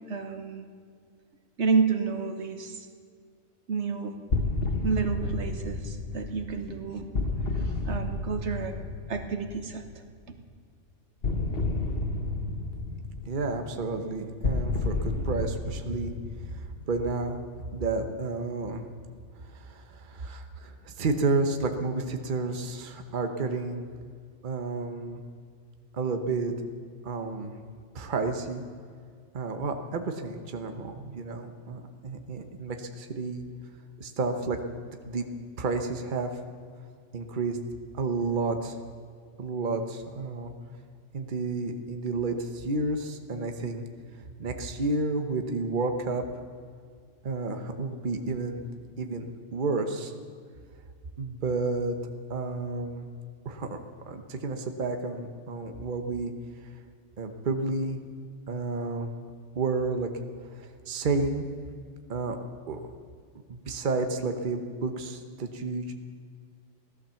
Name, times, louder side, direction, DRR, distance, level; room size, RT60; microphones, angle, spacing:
voice 1, 0.1-0.7 1.6-2.9 3.7-4.2 4.8-7.1 7.6-8.8 9.1-10.0, right 5 dB, 75° right, 7 dB, 1.4 m, -30 dB
sound 1, 4.3-10.1 11.2-17.5, left 2 dB, 55° left, 1.5 m, -31 dB
voice 2, 13.2-15.0 15.2-16.1 16.9-17.4 17.7-18.9 19.5-23.9 24.4-25.2 25.9-26.5 27.0-27.5 27.9-28.6 29.3-33.5 34.0-34.6 35.1-35.3 35.6-36.3 37.1-37.6 37.9-38.8 39.4-40.5 41.1-43.8 44.4-46.3 47.2-48.6 49.0-50.1 51.2-52.0 52.3-53.1 53.4-53.8 54.0-56.3 57.2-58.0 58.5-59.1 59.6-60.1 60.6-61.4 62.1-62.4 62.7-62.8 63.5-65.9, right 3 dB, 45° right, 6 dB, 1.1 m, -31 dB
16.5 x 12.0 x 7.0 m, 2.1 s
omnidirectional pair, 1.2 m